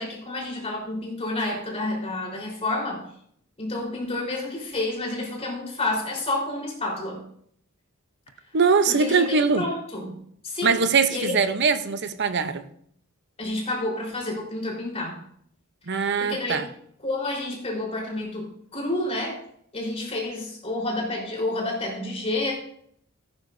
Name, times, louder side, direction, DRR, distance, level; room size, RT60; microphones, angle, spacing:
voice 1, 0.0-3.0 3.6-7.2 8.9-10.2 10.4-10.8 11.1-11.4 13.4-15.2 16.2-16.6 17.0-19.4 19.7-22.5, left 2 dB, 30° left, 4.2 m, -29 dB
voice 2, 8.5-9.6 10.6-12.6 15.9-16.6, right 5 dB, 55° right, 0.8 m, -22 dB
16.0 x 9.8 x 2.7 m
head